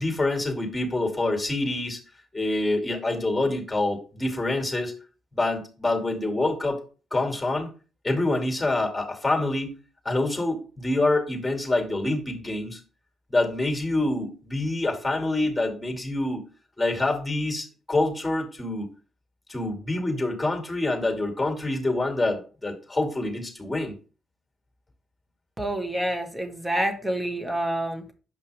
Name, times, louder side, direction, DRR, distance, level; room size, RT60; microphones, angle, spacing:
voice 1, 0.0-2.0 2.3-4.9 5.3-6.8 7.1-7.7 8.0-9.7 10.0-12.8 13.3-16.4 16.8-18.9 19.5-23.9, left 2 dB, 10° left, 3 dB, 2.4 m, -26 dB
voice 2, 25.6-28.0, right 1 dB, 10° right, 5 dB, 1.8 m, -28 dB
7.6 x 5.3 x 3.4 m, 0.35 s
cardioid pair, 90°, 0 cm